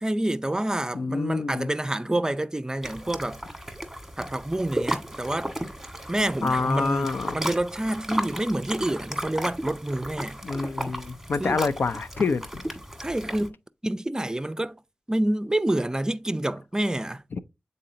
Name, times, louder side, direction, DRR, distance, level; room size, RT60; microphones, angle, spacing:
voice 1, 0.0-3.4 4.2-5.5 6.1-7.1 7.3-10.4 11.4-11.6 13.0-13.6 13.8-14.8 15.1-17.2, right 1 dB, 20° right, 0.4 m, -27 dB
voice 2, 0.9-1.7 6.4-7.4 10.4-12.6 17.3-17.4, left 4 dB, 75° left, 0.4 m, -27 dB
sound 1, 2.8-13.5, right 1 dB, 5° right, 1.4 m, -35 dB
8.7 x 4.0 x 2.7 m
cardioid pair, 50°, 4 cm